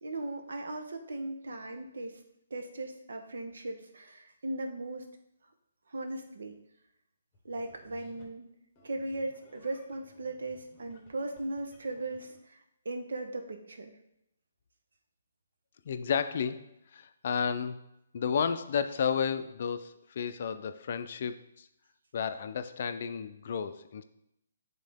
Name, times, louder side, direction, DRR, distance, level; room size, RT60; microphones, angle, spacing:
voice 1, 0.0-2.2 2.5-5.0 5.9-6.5 7.4-8.4 8.8-14.0, right 2 dB, 85° right, 5 dB, 0.9 m, -38 dB
sound 1, 7.3-8.4 8.8-12.4, left 2 dB, 20° left, 1.0 m, -59 dB
voice 2, 15.9-16.6 16.9-17.8 18.1-21.7 22.1-24.0, left 6 dB, 45° left, 11 dB, 0.4 m, -32 dB
7.5 x 3.7 x 3.5 m, 0.82 s
hypercardioid pair, 170°, 0 cm